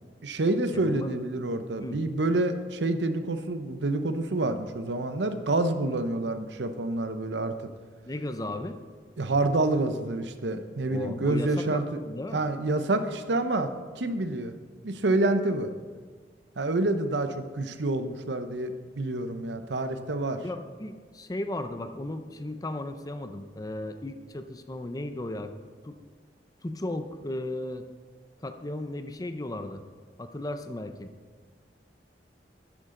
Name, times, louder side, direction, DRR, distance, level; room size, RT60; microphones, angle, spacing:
voice 1, 0.2-7.5 9.2-12.0 12.3-14.5 14.8-15.7 16.6-20.4, right 2 dB, 90° right, 9 dB, 0.8 m, -28 dB
voice 2, 0.7-1.2 1.8-2.0 8.0-8.8 10.9-12.5 20.4-25.5 25.8-26.0 26.6-27.8 28.4-29.8 30.2-31.1, left 1 dB, 20° left, 8 dB, 0.6 m, -35 dB
11.5 x 9.9 x 3.8 m, 1.5 s
head